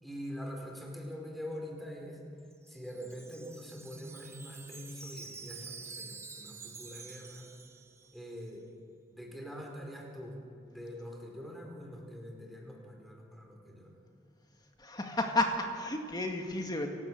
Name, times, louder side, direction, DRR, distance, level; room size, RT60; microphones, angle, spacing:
voice 1, 0.0-2.2 2.7-7.5 8.1-8.6 9.1-10.4 10.7-13.9, equal, ahead, 0 dB, 4.9 m, -44 dB
Wind chime, 2.4-8.4, right 4 dB, 15° right, 1.6 m, -48 dB
voice 2, 14.6-16.9, left 2 dB, 20° left, 3 dB, 2.1 m, -32 dB
30.0 x 16.5 x 7.9 m, 2.7 s
head